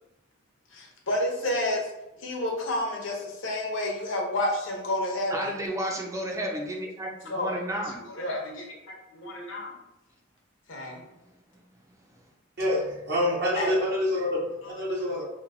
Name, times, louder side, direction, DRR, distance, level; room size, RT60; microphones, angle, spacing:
voice 1, 0.7-1.9 2.2-5.6 7.2-8.8 9.1-9.7 10.7-11.0 13.5-13.8 14.6-14.7 15.2-15.3, left 1 dB, 70° left, -1 dB, 0.8 m, -30 dB
voice 2, 5.3-8.0, right 1 dB, 15° right, 0 dB, 0.4 m, -32 dB
voice 3, 12.6-15.2, left 1 dB, 55° right, -5 dB, 0.7 m, -27 dB
3.0 x 2.6 x 2.5 m, 0.93 s
head